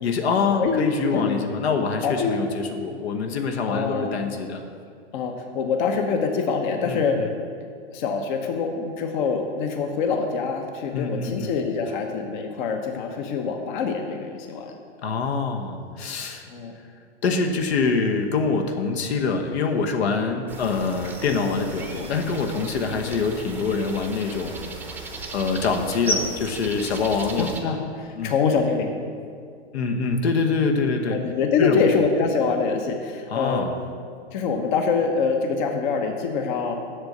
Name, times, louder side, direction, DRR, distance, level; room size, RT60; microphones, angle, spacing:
voice 1, 0.0-4.6 6.8-7.3 10.9-11.5 15.0-16.4 17.2-24.8 25.3-27.7 28.2-28.3 29.7-31.2 31.6-31.8 33.3-33.7, left 4 dB, 70° left, 4 dB, 1.2 m, -25 dB
voice 2, 0.6-1.5 2.0-2.4 3.7-4.1 5.1-7.2 7.9-14.7 16.5-16.7 22.9-23.1 27.4-28.9 31.1-33.7 34.3-36.7, left 5 dB, 45° left, 4 dB, 1.1 m, -25 dB
sound 1, 20.5-27.6, right 2 dB, 5° right, 0.8 m, -35 dB
8.0 x 6.7 x 7.8 m, 2.2 s
hypercardioid pair, 140°, 34 cm